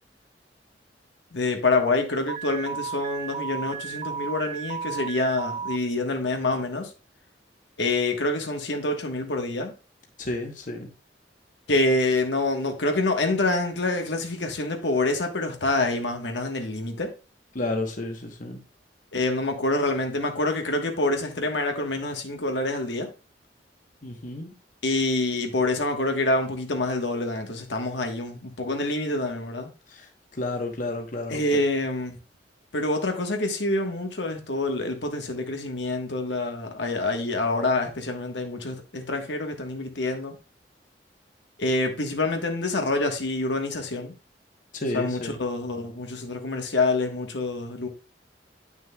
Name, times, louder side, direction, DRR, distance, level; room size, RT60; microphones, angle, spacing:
voice 1, 1.3-6.9 7.8-9.7 11.7-17.1 19.1-23.1 24.8-29.7 31.3-32.2 32.7-40.4 41.6-44.1 44.9-47.9, left 2 dB, 85° left, 1.3 m, -26 dB
Alarm, 2.3-5.8, right 6 dB, 35° right, 0.3 m, -33 dB
voice 2, 10.2-10.9 17.5-18.6 24.0-24.5 29.9-31.4 44.7-45.4, left 2 dB, 45° left, 1.1 m, -31 dB
9.3 x 6.2 x 2.3 m
head